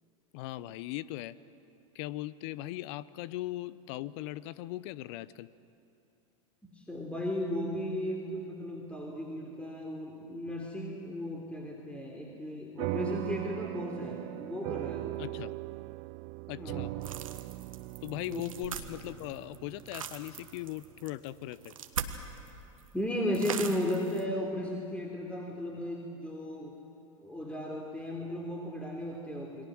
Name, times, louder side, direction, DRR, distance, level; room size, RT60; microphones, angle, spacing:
voice 1, 0.3-1.4 1.9-5.5 15.2-15.5 16.5-16.9 18.0-21.7, left 16 dB, 55° left, 18 dB, 0.8 m, -39 dB
voice 2, 6.6-15.2 16.6-16.9 18.3-18.4 22.9-26.8 27.2-29.6, left 1 dB, 5° left, -1 dB, 3.4 m, -35 dB
sound 1, 12.8-21.5, right 23 dB, 45° right, 0.4 m, -39 dB
sound 2, 17.0-22.5 22.8-22.9 23.3-24.2, right 7 dB, 80° right, 1.5 m, -40 dB
28.5 x 22.5 x 6.3 m, 2.7 s
hypercardioid pair, 90°, 17 cm